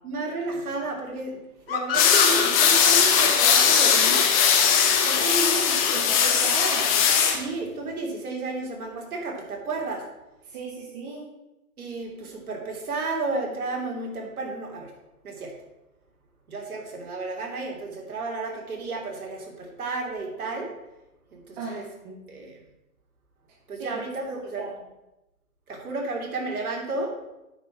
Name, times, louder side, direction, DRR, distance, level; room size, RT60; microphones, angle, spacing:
voice 1, 0.0-1.4 1.7-4.2 4.9-5.8 7.3-10.0 11.8-14.9 15.2-15.5 16.5-20.7 21.3-21.8 22.3-22.6 23.7-24.6 25.7-27.1, right 3 dB, 80° right, 0 dB, 3.4 m, -32 dB
sound 1, 1.7-5.1, left 7 dB, 40° left, 1.4 m, -30 dB
sound 2, 1.9-7.4, left 7 dB, 25° left, 1.0 m, -19 dB
voice 2, 4.9-5.2 5.9-7.0 10.5-11.2 21.6-22.2 23.8-24.0 24.6-24.7, right 3 dB, 35° right, -4 dB, 2.3 m, -36 dB
9.2 x 5.5 x 6.0 m, 0.97 s
hypercardioid pair, 155°, 43 cm